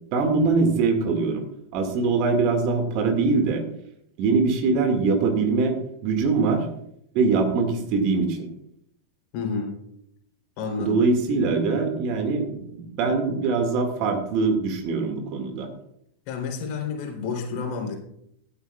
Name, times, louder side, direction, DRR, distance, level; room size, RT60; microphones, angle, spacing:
voice 1, 0.1-1.4 1.7-3.6 4.2-5.8 6.0-6.6 7.1-8.5 10.8-15.7, right 4 dB, 40° right, 5 dB, 2.0 m, -22 dB
voice 2, 9.3-9.7 10.6-11.0 16.3-18.0, left 5 dB, 45° left, 1 dB, 3.4 m, -30 dB
15.0 x 12.0 x 2.4 m, 0.74 s
figure-of-eight pair, 90°, 0 cm